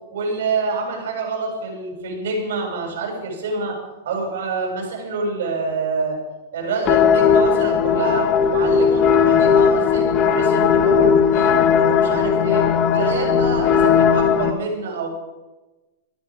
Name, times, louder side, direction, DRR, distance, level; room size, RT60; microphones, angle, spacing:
voice 1, 0.1-3.8 4.0-6.2 6.5-11.6 11.9-15.1, right 3 dB, 85° right, 1 dB, 7.2 m, -26 dB
sound 1, 6.9-14.5, left 7 dB, 30° left, 1.1 m, -17 dB
19.5 x 12.0 x 5.2 m, 1.1 s
supercardioid pair, 150°, 0 cm